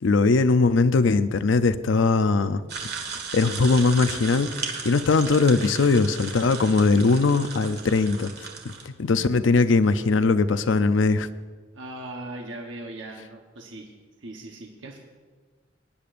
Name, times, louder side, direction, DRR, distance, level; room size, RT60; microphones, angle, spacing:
voice 1, 0.0-2.6 3.3-8.3 8.6-11.3, left 3 dB, 85° left, 12 dB, 0.5 m, -20 dB
sound 1, 2.7-8.8, right 5 dB, 60° right, 1.7 m, -36 dB
voice 2, 11.7-13.9 14.2-15.0, right 2 dB, 85° right, 0 dB, 1.1 m, -39 dB
21.5 x 10.0 x 2.6 m, 1.5 s
head